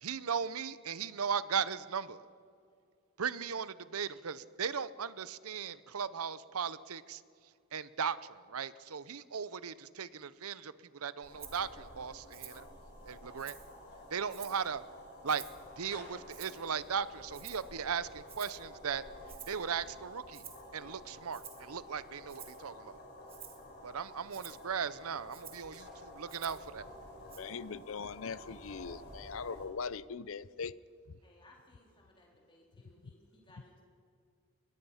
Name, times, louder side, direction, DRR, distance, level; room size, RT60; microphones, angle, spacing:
voice 1, 0.0-2.3 3.2-7.2 7.7-12.7 13.1-13.6 14.1-14.8 15.2-15.4 15.8-19.0 19.5-20.4 20.7-23.0 23.8-26.8, right 6 dB, 85° right, 17 dB, 0.7 m, -37 dB
sound 1, 11.2-29.7, left 1 dB, 50° left, 5.0 m, -51 dB
Rattle (instrument), 11.4-11.6 12.3-12.7 13.1-13.7 14.3-14.7 15.3-15.7 16.3-16.7 17.3-17.7 18.3-18.6 19.3-19.7 20.3-20.7 21.3-21.7 22.3-22.6 23.3-23.6 24.3-24.6 25.3-25.7 26.3-26.7 27.3-27.4, right 9 dB, 25° right, 1.8 m, -51 dB
sound 2, 25.6-29.8, equal, ahead, 5.4 m, -62 dB
voice 2, 27.4-30.7, left 5 dB, 70° left, 19 dB, 0.5 m, -40 dB
voice 3, 31.2-33.8, left 1 dB, 20° left, -1 dB, 4.0 m, -62 dB
22.0 x 20.5 x 5.7 m, 2.3 s
head